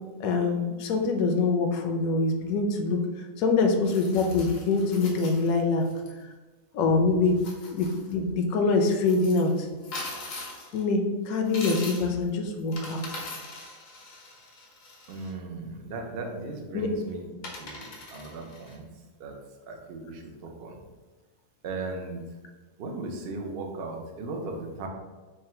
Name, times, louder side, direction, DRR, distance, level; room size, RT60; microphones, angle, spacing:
voice 1, 0.2-3.0 3.4-5.8 6.7-7.4 7.7-9.7 10.7-13.0 16.7-16.9, left 3 dB, 70° left, 3 dB, 1.0 m, -24 dB
sound 1, 3.8-6.1 7.3-8.1 9.0-10.8 11.4-12.2 12.6-15.3 16.8-16.9 17.4-18.8, left 2 dB, 90° left, 1.4 m, -41 dB
voice 2, 15.1-17.3 17.6-18.8 19.2-19.3 19.7-20.8 21.6-22.2 22.8-24.9, right 2 dB, 60° right, 2 dB, 0.6 m, -37 dB
3.7 x 2.2 x 4.2 m, 1.3 s
omnidirectional pair, 1.7 m